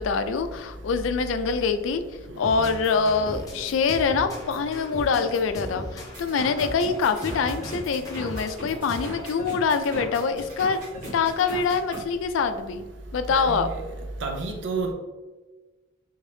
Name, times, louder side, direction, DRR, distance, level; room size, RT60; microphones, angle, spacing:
voice 1, 0.0-2.0 2.4-10.8 11.1-12.8 13.1-13.7, left 5 dB, 80° left, 9 dB, 0.3 m, -25 dB
sound 1, 2.4-9.3, left 1 dB, 20° left, 0.5 m, -38 dB
sound 2, 6.1-12.0, equal, 40° right, 1.4 m, -38 dB
voice 2, 13.3-13.8 14.2-14.9, right 3 dB, 70° right, 3 dB, 0.6 m, -29 dB
3.5 x 2.7 x 3.3 m, 1.2 s
head